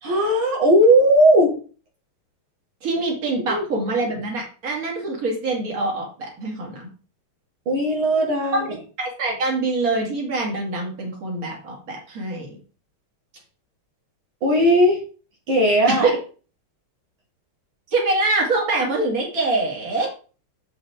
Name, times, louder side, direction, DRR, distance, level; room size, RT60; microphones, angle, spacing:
voice 1, 0.0-1.6 3.4-3.6 7.7-8.7 14.4-15.0 15.5-16.1, equal, 75° right, -2 dB, 2.7 m, -17 dB
voice 2, 2.8-6.9 8.5-12.5 15.9-16.2 17.9-20.1, right 2 dB, 40° right, -1 dB, 2.8 m, -24 dB
7.8 x 6.5 x 3.6 m, 0.37 s
omnidirectional pair, 2.3 m